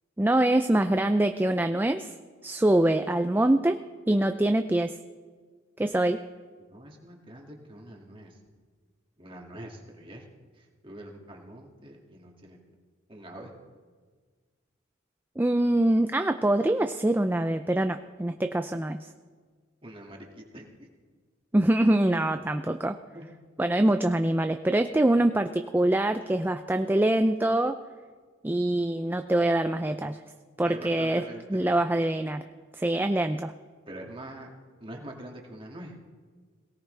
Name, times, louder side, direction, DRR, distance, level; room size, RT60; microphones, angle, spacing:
voice 1, 0.2-2.1 2.4-3.8 4.1-5.0 5.8-6.2 15.4-19.1 21.5-23.0 23.6-27.8 28.4-30.2 30.6-31.3 31.5-32.4 32.7-33.5, right 1 dB, 10° right, 8 dB, 0.4 m, -24 dB
voice 2, 6.7-8.4 9.2-10.2 10.6-12.6 13.1-13.5 19.8-20.8 23.1-23.3 30.7-31.6 33.9-34.5 34.8-36.0, right 1 dB, 25° right, 0 dB, 2.2 m, -44 dB
22.0 x 17.5 x 3.4 m, 1.5 s
head